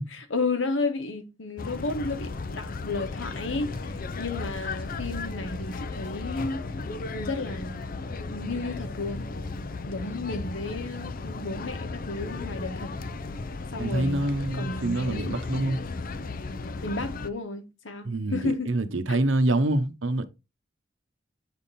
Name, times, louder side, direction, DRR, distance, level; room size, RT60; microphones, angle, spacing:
voice 1, 0.1-3.9 4.2-6.6 7.1-7.9 8.3-9.2 9.9-13.0 13.7-14.2 14.5-15.4 16.8-18.7 19.1-19.2, left 3 dB, 85° left, 1.2 m, -32 dB
sound 1, 1.6-17.3, left 3 dB, 50° left, 0.5 m, -35 dB
voice 2, 13.8-15.8 18.0-20.2, right 1 dB, 90° right, 0.9 m, -26 dB
8.6 x 3.6 x 4.2 m
head